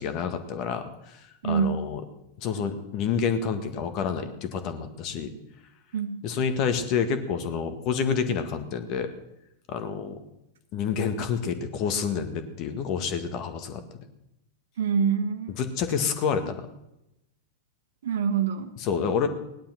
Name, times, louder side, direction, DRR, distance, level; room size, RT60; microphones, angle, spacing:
voice 1, 0.0-2.0 2.4-5.3 6.2-9.1 9.7-10.2 10.7-13.8 15.6-16.7 18.8-19.3, left 6 dB, 40° left, 9 dB, 1.8 m, -28 dB
voice 2, 1.4-1.8 5.9-6.2 14.8-15.5 18.0-18.7, right 7 dB, 60° right, 7 dB, 1.5 m, -25 dB
17.5 x 11.5 x 5.9 m, 0.87 s
figure-of-eight pair, 90°, 0 cm